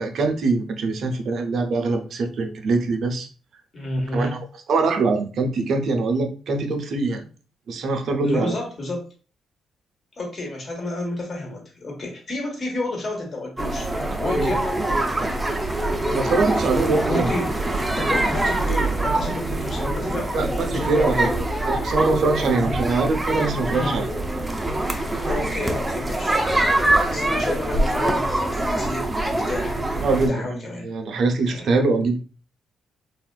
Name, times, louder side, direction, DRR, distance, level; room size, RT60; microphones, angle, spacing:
voice 1, 0.0-3.3 4.1-4.3 4.7-7.2 7.7-8.5 14.3-14.5 16.1-17.3 20.3-21.4 21.6-24.1 30.0-30.5 30.8-32.2, right 3 dB, 60° right, 5 dB, 0.5 m, -23 dB
voice 2, 3.7-4.4 8.2-9.1 10.2-13.9 14.2-14.7 17.1-17.5 18.0-21.4 22.6-22.8 23.7-24.0 25.2-29.8 30.1-30.9 31.5-31.7, left 2 dB, 40° left, 0 dB, 1.3 m, -31 dB
sound 1, 13.6-30.3, right 1 dB, 15° right, 0.5 m, -24 dB
3.4 x 2.4 x 2.3 m, 0.37 s
cardioid pair, 90°, 0 cm